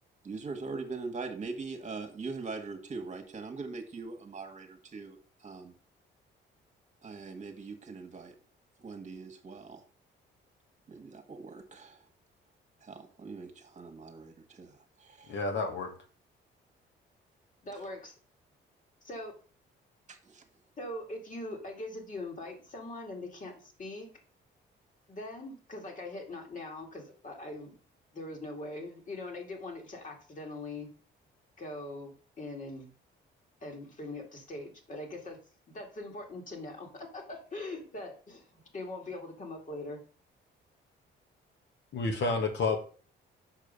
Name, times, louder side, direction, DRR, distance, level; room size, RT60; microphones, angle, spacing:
voice 1, 0.2-5.7 7.0-8.3 8.8-9.8 10.9-12.0 12.8-15.4 20.1-20.4, right 4 dB, 35° right, 1.5 m, -42 dB
voice 2, 15.3-15.9 41.9-42.8, left 3 dB, 65° left, 1.7 m, -30 dB
voice 3, 17.6-18.1 19.1-19.3 20.8-24.1 25.1-27.8 28.1-30.9 31.6-32.9 33.6-35.4 35.7-40.0, left 2 dB, 40° left, 2.4 m, -42 dB
6.5 x 5.0 x 5.3 m
cardioid pair, 90°, 20 cm